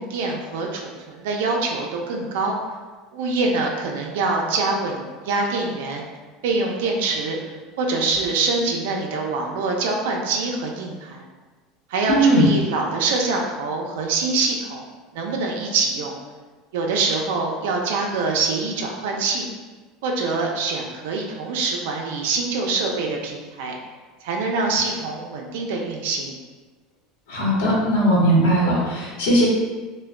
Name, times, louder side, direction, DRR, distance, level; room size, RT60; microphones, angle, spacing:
voice 1, 0.0-2.6 3.1-6.0 6.4-7.4 7.8-11.3 11.9-14.8 15.1-16.1 16.7-19.5 20.0-23.7 24.2-26.4, right 3 dB, 85° right, 0 dB, 0.4 m, -24 dB
voice 2, 12.1-12.5 27.3-29.5, right 1 dB, 90° left, -5 dB, 0.9 m, -18 dB
2.2 x 2.1 x 3.6 m, 1.3 s
cardioid pair, 170°, 0 cm